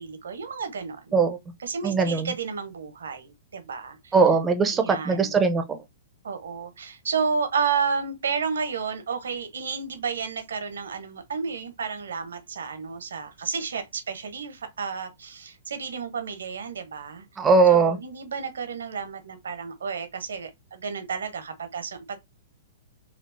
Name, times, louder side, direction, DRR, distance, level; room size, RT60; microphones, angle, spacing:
voice 1, 0.0-4.1 4.7-5.4 6.2-17.2 17.7-22.2, right 5 dB, 85° right, 0.9 m, -31 dB
voice 2, 1.8-2.3 4.1-5.8 17.4-18.0, right 4 dB, 15° right, 0.6 m, -20 dB
4.3 x 2.3 x 2.6 m
hypercardioid pair, 125°, 0 cm